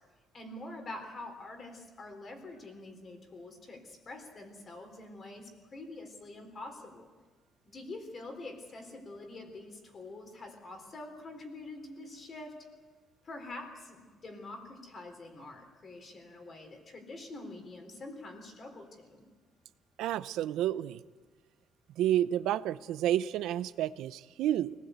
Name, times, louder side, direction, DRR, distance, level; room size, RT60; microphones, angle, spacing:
voice 1, 0.3-7.1 7.7-12.6 13.2-19.2, left 2 dB, 30° left, 5 dB, 3.7 m, -46 dB
voice 2, 20.0-21.0 22.0-24.7, right 12 dB, 90° right, 14 dB, 0.6 m, -30 dB
25.0 x 19.0 x 8.2 m, 1.4 s
cardioid pair, 160°, 0 cm